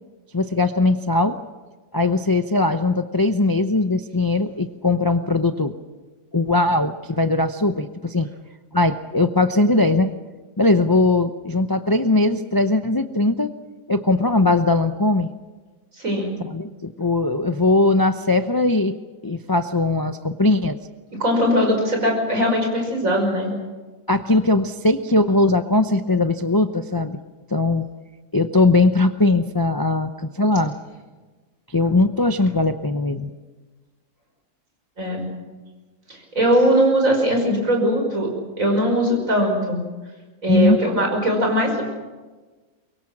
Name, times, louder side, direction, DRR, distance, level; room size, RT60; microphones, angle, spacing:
voice 1, 0.3-1.4 1.9-5.7 6.3-8.3 8.7-10.1 10.6-13.5 13.9-15.3 16.4-18.9 19.2-20.8 24.1-27.2 27.5-27.9 28.3-30.8 31.7-33.3 40.5-40.8, left 2 dB, 30° left, 8 dB, 0.3 m, -20 dB
voice 2, 16.0-16.3 21.2-23.5 35.0-35.3 36.1-38.3 38.6-39.8 40.4-41.8, equal, 50° right, 2 dB, 6.0 m, -20 dB
24.0 x 22.5 x 7.4 m, 1.3 s
omnidirectional pair, 1.8 m